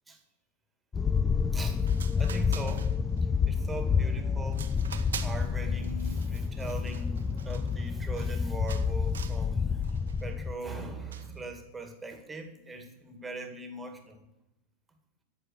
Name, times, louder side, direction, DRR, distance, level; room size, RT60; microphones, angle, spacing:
sound 1, 0.9-10.6, left 6 dB, 15° left, 0.4 m, -29 dB
voice 1, 1.5-2.9 3.5-9.8 10.2-14.2, right 2 dB, 10° right, 5 dB, 1.9 m, -41 dB
sound 2, 1.9-3.2 3.6-4.0 4.5-5.5 5.8-8.4 8.7-9.4 9.8-10.2 11.1-11.4, right 8 dB, 65° right, 0.9 m, -45 dB
13.5 x 5.5 x 8.3 m, 0.92 s
figure-of-eight pair, 90°, 0 cm